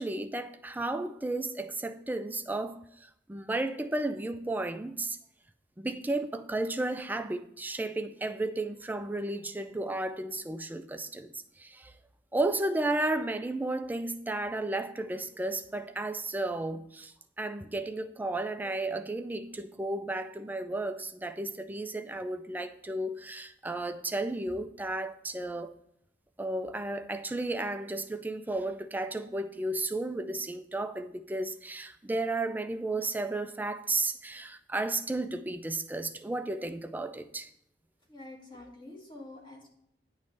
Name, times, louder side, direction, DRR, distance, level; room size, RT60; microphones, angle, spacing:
voice 1, 0.0-5.2 5.8-11.3 11.6-11.9 12.3-25.7 26.4-37.5, right 2 dB, 10° right, 0.4 m, -33 dB
voice 2, 38.1-39.7, left 2 dB, 25° left, 1.7 m, -47 dB
8.6 x 3.1 x 6.4 m
head